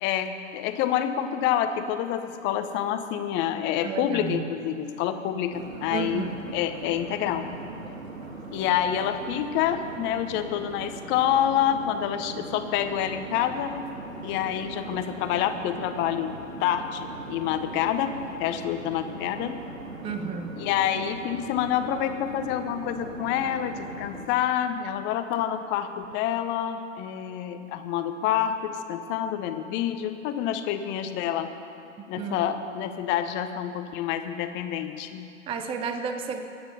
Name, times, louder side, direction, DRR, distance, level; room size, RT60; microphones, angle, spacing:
voice 1, 0.0-7.5 8.5-13.9 14.2-19.6 20.6-31.5 32.1-35.3, left 10 dB, 30° left, 8 dB, 1.0 m, -27 dB
voice 2, 3.8-4.5 5.9-6.4 20.0-20.5 32.2-32.5 35.5-36.4, right 6 dB, 15° right, 7 dB, 0.7 m, -32 dB
sound 1, 5.5-24.3, right 3 dB, 85° right, 1.8 m, -40 dB
22.0 x 9.0 x 5.6 m, 2.6 s
figure-of-eight pair, 115°, 39 cm